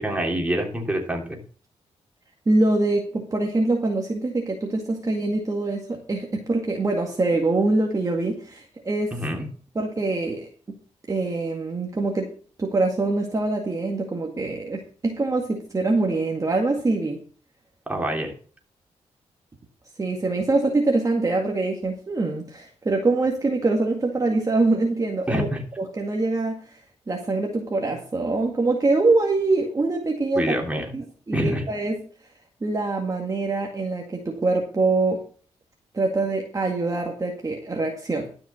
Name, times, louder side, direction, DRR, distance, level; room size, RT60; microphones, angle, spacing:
voice 1, 0.0-1.4 9.1-9.5 17.9-18.3 25.3-25.6 30.3-30.9 31.3-31.6, equal, 10° right, 1 dB, 3.2 m, -26 dB
voice 2, 2.5-9.2 9.8-10.5 11.1-12.3 12.6-17.2 20.0-25.5 25.8-26.6 27.1-30.6 30.9-32.0 32.6-35.2 35.9-38.3, right 2 dB, 30° right, 1 dB, 1.9 m, -24 dB
12.5 x 5.9 x 5.8 m, 0.42 s
cardioid pair, 90°, 11 cm